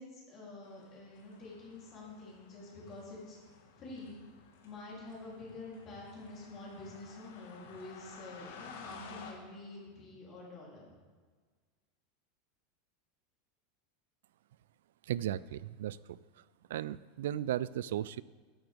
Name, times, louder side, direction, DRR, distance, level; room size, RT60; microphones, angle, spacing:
voice 1, 0.0-3.4 3.8-4.2 4.6-10.9, left 2 dB, 30° left, -4 dB, 3.2 m, -48 dB
sound 1, 0.6-9.3, left 6 dB, 85° left, 1.6 m, -54 dB
voice 2, 15.0-16.2 16.7-18.2, right 12 dB, 90° right, 19 dB, 0.3 m, -35 dB
12.0 x 9.9 x 3.5 m, 1.5 s
supercardioid pair, 170°, 0 cm